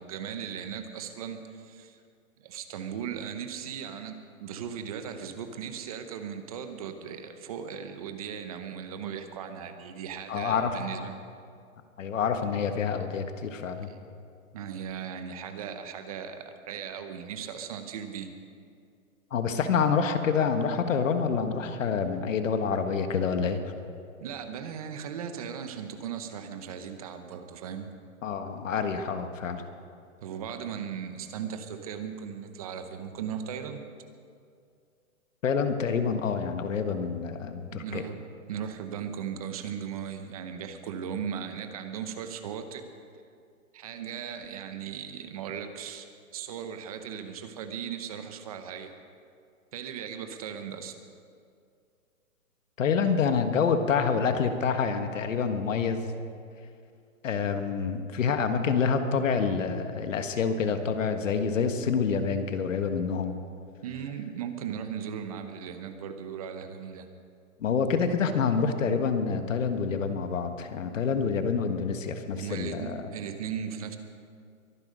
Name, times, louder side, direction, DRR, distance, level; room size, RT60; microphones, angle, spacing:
voice 1, 0.0-2.0 2.4-11.1 13.8-14.0 14.5-18.3 24.2-27.9 30.2-33.9 37.7-42.9 43.7-46.1 46.3-48.9 49.7-51.0 63.8-67.1 72.3-74.0, right 8 dB, 25° right, 8 dB, 0.8 m, -37 dB
voice 2, 10.3-11.0 12.0-13.9 19.3-23.6 28.2-29.6 35.4-38.0 52.8-56.1 57.2-63.3 67.6-73.0, left 6 dB, 60° left, 7 dB, 1.5 m, -27 dB
23.0 x 10.5 x 5.2 m, 2.3 s
hypercardioid pair, 165°, 42 cm